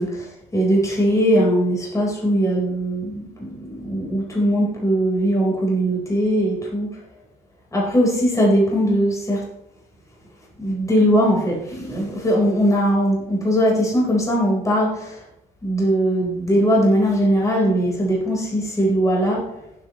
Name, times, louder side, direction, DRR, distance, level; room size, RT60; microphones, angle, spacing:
voice 1, 0.0-6.9 7.7-9.4 10.6-15.2 15.6-19.4, equal, 20° left, -3 dB, 4.3 m, -20 dB
16.0 x 8.2 x 3.1 m, 0.84 s
cardioid pair, 110°, 17 cm